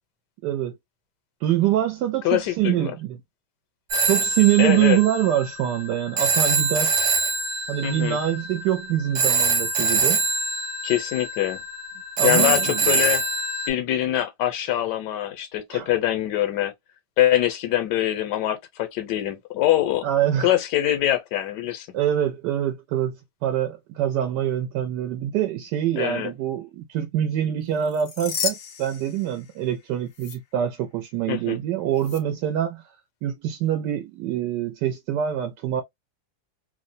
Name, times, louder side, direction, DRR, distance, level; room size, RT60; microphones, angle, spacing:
voice 1, 0.4-0.7 1.4-3.2 4.0-6.9 7.7-10.2 12.2-13.0 15.7-15.9 20.0-20.5 21.9-23.2 23.4-32.8 33.2-35.8, right 11 dB, 85° right, 1.2 m, -24 dB
voice 2, 2.2-2.9 4.6-5.0 7.8-8.2 10.8-11.6 12.2-13.2 13.7-16.7 17.2-20.1 20.4-21.9 26.0-26.3 31.3-31.6, left 12 dB, 85° left, 1.3 m, -24 dB
Telephone, 3.9-13.7, right 4 dB, 65° right, 1.4 m, -24 dB
sound 1, 27.8-29.8 30.1-30.4 32.0-32.2, left 7 dB, 70° left, 0.6 m, -33 dB
3.1 x 2.1 x 2.6 m
omnidirectional pair, 1.8 m